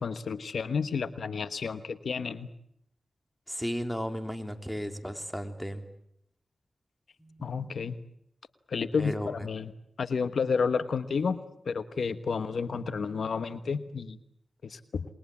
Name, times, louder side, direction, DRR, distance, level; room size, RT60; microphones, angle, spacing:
voice 1, 0.0-2.5 7.4-7.9 8.7-9.7 10.0-11.4 11.6-14.2 14.6-15.1, left 5 dB, 85° left, 12 dB, 1.2 m, -31 dB
voice 2, 3.5-5.9 7.2-7.5 9.0-9.3, equal, 5° left, 6 dB, 3.5 m, -34 dB
28.5 x 21.5 x 8.5 m, 0.74 s
cardioid pair, 50°, 0 cm